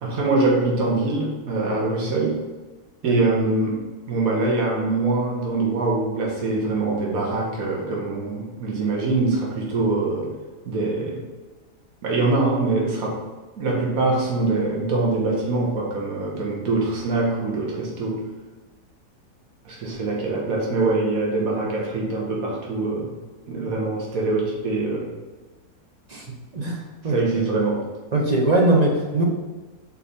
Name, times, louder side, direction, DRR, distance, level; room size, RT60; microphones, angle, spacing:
voice 1, 0.0-2.4 3.0-3.8 4.1-10.3 10.7-11.2 12.0-13.2 13.6-18.1 19.7-23.1 23.5-25.0 27.1-27.8, right 3 dB, 60° right, -3 dB, 1.8 m, -23 dB
voice 2, 26.5-27.2 28.1-29.2, right 2 dB, 30° right, 0 dB, 0.8 m, -21 dB
4.9 x 4.2 x 5.2 m, 1.3 s
omnidirectional pair, 1.7 m